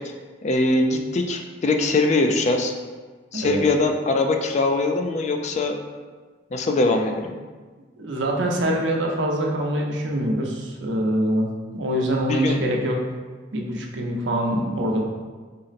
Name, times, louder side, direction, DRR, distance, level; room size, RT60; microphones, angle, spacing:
voice 1, 0.4-2.7 3.3-5.8 6.5-7.3 12.3-12.6, left 2 dB, 40° left, 4 dB, 0.3 m, -22 dB
voice 2, 8.0-13.0 13.5-15.1, right 1 dB, 85° right, 0 dB, 0.6 m, -24 dB
3.9 x 2.1 x 4.0 m, 1.4 s
head